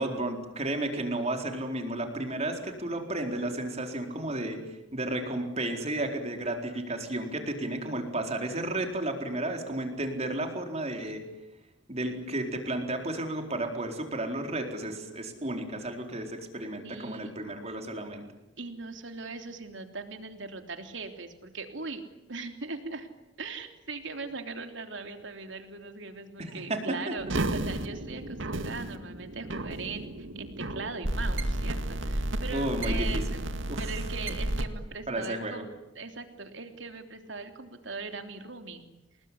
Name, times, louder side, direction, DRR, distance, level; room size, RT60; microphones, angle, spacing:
voice 1, 0.0-4.6 4.9-11.2 11.9-18.2 26.4-27.1 32.5-33.2 33.7-33.9 35.1-35.6, right 1 dB, 35° right, 4 dB, 4.3 m, -32 dB
voice 2, 16.8-17.3 18.6-22.0 22.3-23.1 23.4-33.4 33.8-35.7 35.9-38.8, right 4 dB, 75° right, 6 dB, 3.3 m, -40 dB
sound 1, 27.2-34.7, right 1 dB, 90° right, 2.1 m, -32 dB
29.0 x 20.5 x 9.9 m, 0.93 s
head